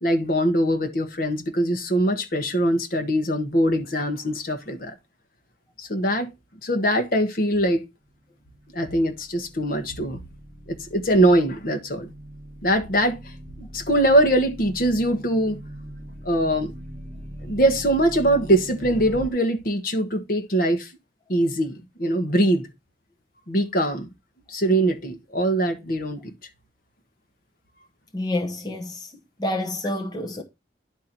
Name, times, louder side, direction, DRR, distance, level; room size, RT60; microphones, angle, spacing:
voice 1, 0.0-4.9 5.8-6.3 6.6-7.8 8.7-10.2 10.7-12.1 12.6-13.2 13.6-15.6 16.2-16.7 17.4-20.9 21.3-22.7 23.5-24.1 24.5-26.3, right 1 dB, 50° left, 1.2 m, -22 dB
sound 1, 8.4-19.3, equal, 40° right, 2.0 m, -41 dB
voice 2, 28.1-29.1 29.4-30.4, left 1 dB, 20° left, 1.0 m, -28 dB
10.5 x 4.0 x 4.4 m
head